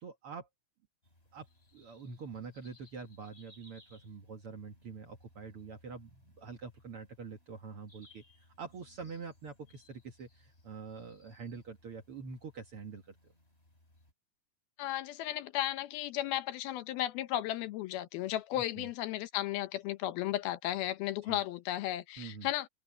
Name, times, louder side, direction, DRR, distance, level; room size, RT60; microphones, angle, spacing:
voice 1, 0.0-0.5 1.3-1.5 1.7-8.2 8.6-13.2 18.5-18.9 21.3-21.4 22.2-22.5, right 5 dB, 50° right, 1.8 m, -45 dB
sound 1, 1.0-14.1, left 1 dB, 15° left, 6.5 m, -64 dB
voice 2, 14.8-22.7, left 14 dB, 90° left, 2.9 m, -34 dB
open air
omnidirectional pair, 4.2 m